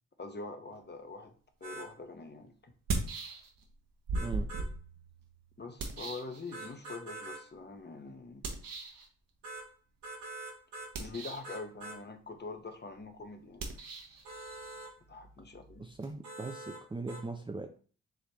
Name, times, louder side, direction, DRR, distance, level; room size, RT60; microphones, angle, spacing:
voice 1, 0.2-1.3 1.6-2.7 5.6-8.4 11.0-13.7 15.1-15.9, left 3 dB, 25° left, 6 dB, 0.9 m, -44 dB
sound 1, 1.6-1.9 4.1-4.7 6.5-7.4 9.4-9.7 10.0-10.9 11.4-12.0 14.2-14.9 16.2-16.8 17.1-17.2, right 2 dB, 75° right, 2.0 m, -44 dB
sound 2, 1.7-1.8 2.7-3.7 4.1-6.9 8.4-9.1 10.8-11.6 13.5-16.1, right 3 dB, 55° right, 1.1 m, -39 dB
voice 2, 15.8-17.8, right 3 dB, 15° right, 3 dB, 0.5 m, -40 dB
5.0 x 3.1 x 2.9 m, 0.42 s
hypercardioid pair, 40°, 39 cm